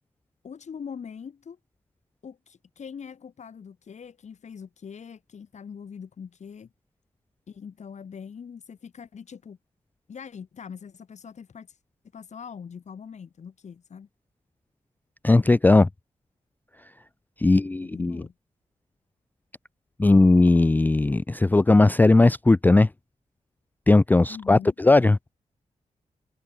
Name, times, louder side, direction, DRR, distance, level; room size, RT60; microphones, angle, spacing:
voice 1, 0.4-1.6 2.2-6.7 7.5-9.6 10.1-11.8 12.1-14.1 17.4-18.3 24.3-24.7, left 6 dB, 65° left, 1.9 m, -42 dB
voice 2, 15.2-15.9 17.4-18.2 20.0-22.9 23.9-25.2, left 2 dB, 15° left, 0.3 m, -18 dB
wide cardioid pair, 110°, 13 cm